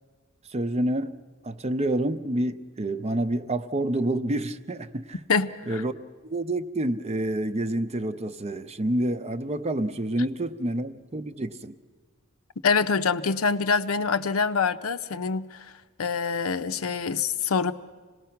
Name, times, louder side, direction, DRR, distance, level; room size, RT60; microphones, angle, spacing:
voice 1, 0.5-1.1 1.4-5.2 5.7-5.9 6.3-11.7, right 1 dB, 30° right, 11 dB, 0.6 m, -28 dB
voice 2, 5.3-5.8 12.6-15.7 16.0-17.7, left 5 dB, 85° left, 10 dB, 0.7 m, -25 dB
26.5 x 18.5 x 5.8 m, 1.5 s
head